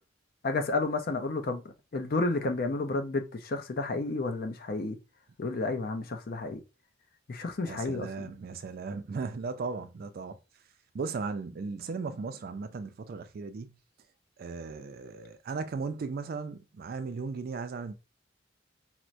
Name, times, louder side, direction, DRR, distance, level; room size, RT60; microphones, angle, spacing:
voice 1, 0.4-5.0 5.4-6.6 7.3-8.1, left 3 dB, 50° left, 0.5 m, -31 dB
voice 2, 7.6-10.4 10.9-13.8 14.4-17.9, right 4 dB, 50° right, 0.4 m, -36 dB
4.4 x 2.1 x 2.5 m
head